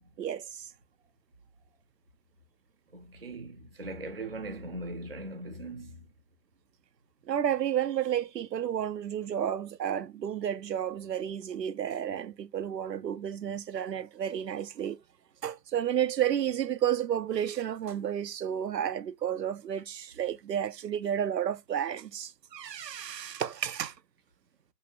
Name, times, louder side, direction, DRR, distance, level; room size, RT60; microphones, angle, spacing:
voice 1, 0.2-0.7 7.3-15.0 15.4-23.9, right 10 dB, 90° right, 0.6 m, -31 dB
voice 2, 2.9-6.0, right 2 dB, 40° right, 0.5 m, -40 dB
3.0 x 2.7 x 2.4 m
figure-of-eight pair, 155°, 48 cm